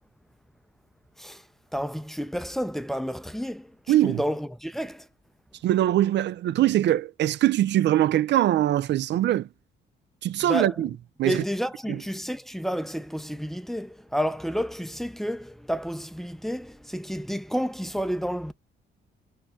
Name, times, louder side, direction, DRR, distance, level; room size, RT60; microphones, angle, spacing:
voice 1, 1.7-5.1 10.4-10.9 11.2-18.5, equal, ahead, 0.5 m, -30 dB
voice 2, 3.9-4.2 5.6-9.5 10.2-10.9 11.2-11.4, right 13 dB, 60° right, 0.4 m, -22 dB
4.6 x 2.3 x 4.3 m
cardioid pair, 90°, 20 cm